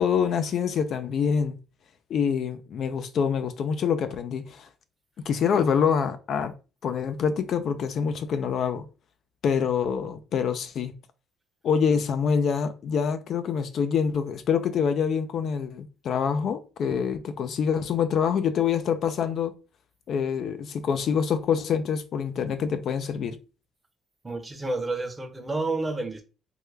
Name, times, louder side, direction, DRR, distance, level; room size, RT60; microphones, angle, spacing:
voice 1, 0.0-1.6 2.1-4.7 5.3-6.5 6.8-8.8 9.4-10.9 11.6-19.5 20.1-23.4, left 7 dB, 55° left, 0.4 m, -26 dB
voice 2, 24.2-26.2, right 2 dB, 20° right, 0.7 m, -30 dB
3.5 x 2.2 x 3.2 m
cardioid pair, 120°, 0 cm